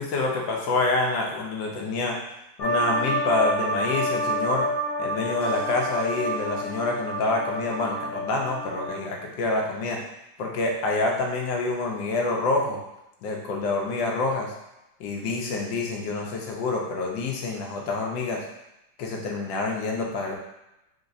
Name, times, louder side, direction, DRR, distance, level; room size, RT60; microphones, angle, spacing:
voice 1, 0.0-2.2 2.6-4.7 5.0-10.0 10.4-12.8 13.2-14.5 15.0-18.4 19.0-20.3, left 3 dB, 75° left, 0 dB, 1.4 m, -27 dB
sound 1, 2.6-9.0, right 1 dB, 25° left, 0.9 m, -28 dB
4.0 x 3.8 x 2.6 m, 0.89 s
omnidirectional pair, 2.1 m